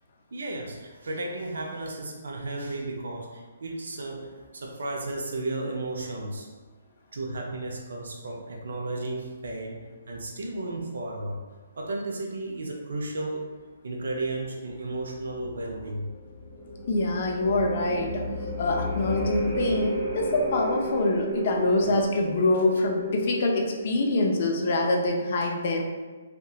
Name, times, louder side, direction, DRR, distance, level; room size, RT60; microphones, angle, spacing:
voice 1, 0.3-6.5 7.1-11.4 11.8-13.4 13.8-16.1 21.8-21.9, right 2 dB, 80° right, 0 dB, 0.4 m, -34 dB
sound 1, 14.8-25.1, equal, ahead, 0.7 m, -33 dB
voice 2, 16.9-18.3 18.6-25.8, left 2 dB, 50° left, 1 dB, 0.4 m, -25 dB
2.7 x 2.1 x 2.3 m, 1.3 s
hypercardioid pair, 160°, 0 cm